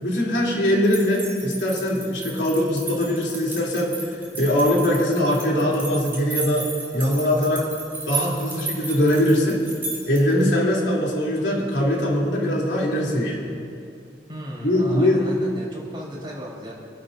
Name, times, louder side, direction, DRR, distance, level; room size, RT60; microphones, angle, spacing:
voice 1, 0.0-6.7 6.9-7.7 8.1-9.6 10.0-13.4 14.6-15.2, left 1 dB, 90° left, -4 dB, 3.4 m, -21 dB
sound 1, 0.8-10.4, right 3 dB, 15° right, 3.2 m, -34 dB
voice 2, 14.3-16.7, equal, 30° right, -5 dB, 4.3 m, -36 dB
28.5 x 11.5 x 2.7 m, 2.5 s
head